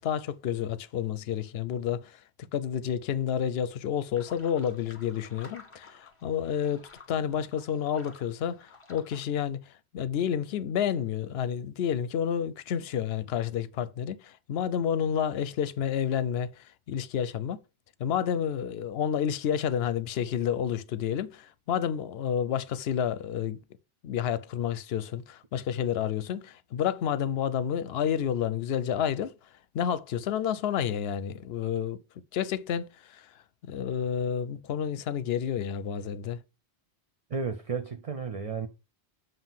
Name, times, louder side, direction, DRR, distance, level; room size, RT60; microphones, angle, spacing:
voice 1, 0.0-2.2 2.5-9.6 9.9-17.6 18.0-23.6 24.0-29.3 29.7-32.0 32.3-33.3 33.6-36.4, left 8 dB, 70° left, 0.8 m, -30 dB
sound 1, 4.1-9.3, left 3 dB, 30° left, 1.2 m, -53 dB
voice 2, 37.3-38.7, right 5 dB, 45° right, 0.5 m, -33 dB
7.3 x 2.7 x 5.6 m
omnidirectional pair, 1.1 m